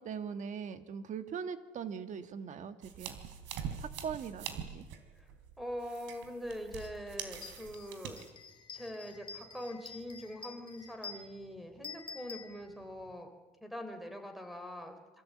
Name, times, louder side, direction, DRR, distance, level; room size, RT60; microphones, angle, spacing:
voice 1, 0.0-3.2 3.8-4.9, right 7 dB, 40° right, 10 dB, 1.7 m, -41 dB
sound 1, 2.8-8.3, right 8 dB, 80° right, 3.7 m, -44 dB
voice 2, 5.6-8.2 8.7-13.3 13.6-15.2, equal, ahead, 7 dB, 3.5 m, -43 dB
sound 2, 6.8-6.9 7.3-13.1, left 4 dB, 25° left, 2.5 m, -49 dB
27.0 x 24.5 x 8.6 m, 1.1 s
cardioid pair, 175°, 19 cm